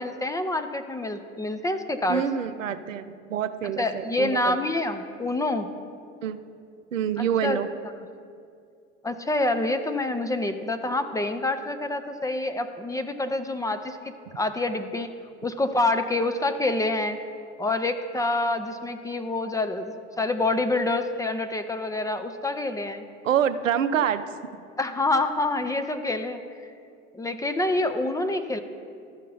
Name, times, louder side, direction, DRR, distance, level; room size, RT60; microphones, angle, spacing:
voice 1, 0.0-2.2 3.8-5.7 7.2-7.6 9.0-14.0 14.4-15.1 15.4-17.2 17.6-23.0 24.8-26.4 27.1-28.6, left 2 dB, 10° left, 8 dB, 0.4 m, -27 dB
voice 2, 2.1-4.6 6.2-6.4 6.9-7.7 23.2-24.2, right 9 dB, 90° right, 10 dB, 0.5 m, -26 dB
12.5 x 5.4 x 5.4 m, 2.3 s
hypercardioid pair, 80°, 37 cm